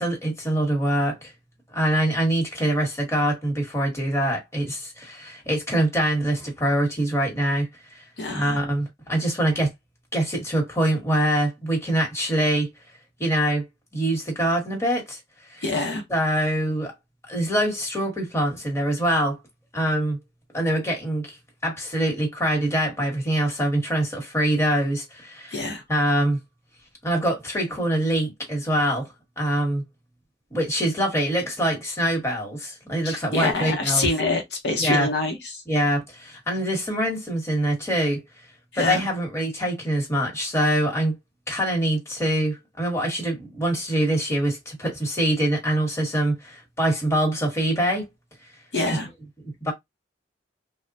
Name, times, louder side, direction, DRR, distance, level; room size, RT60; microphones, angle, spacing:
voice 1, 0.0-1.3 1.7-8.0 8.3-9.7 10.1-12.7 13.2-15.2 15.5-15.6 16.1-16.9 17.3-19.4 19.7-20.2 20.5-21.4 21.6-26.4 27.0-29.1 29.4-29.8 30.5-34.1 34.8-35.1 35.7-38.2 38.7-41.2 41.5-48.1 49.4-49.7, right 1 dB, 15° left, 1.1 m, -24 dB
voice 2, 8.2-8.6 15.6-16.0 25.5-25.8 33.0-35.6 38.7-39.1 48.7-49.1, left 3 dB, 65° left, 0.7 m, -26 dB
3.2 x 2.1 x 2.6 m
head